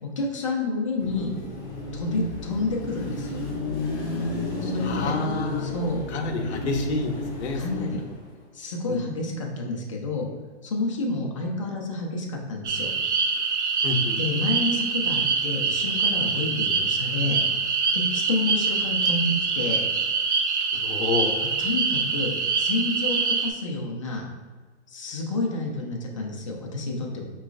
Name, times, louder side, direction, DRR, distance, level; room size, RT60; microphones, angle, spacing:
voice 1, 0.0-1.3 1.9-3.4 4.6-5.2 5.6-6.0 7.5-8.0 8.5-10.3 10.6-12.9 14.2-17.4 17.9-19.8 21.6-24.2 24.9-27.2, left 2 dB, 30° left, -1 dB, 0.4 m, -29 dB
Car passing by / Traffic noise roadway noise / Engine, 1.0-8.3, left 2 dB, 15° left, 0.8 m, -32 dB
voice 2, 4.8-5.7 6.1-7.9 8.9-9.0 13.8-14.2 20.7-21.3, left 3 dB, 70° left, 3 dB, 0.7 m, -28 dB
sound 1, 12.6-23.5, right 5 dB, 75° right, 0.6 m, -25 dB
4.6 x 3.0 x 2.4 m, 1.3 s
hypercardioid pair, 160°, 35 cm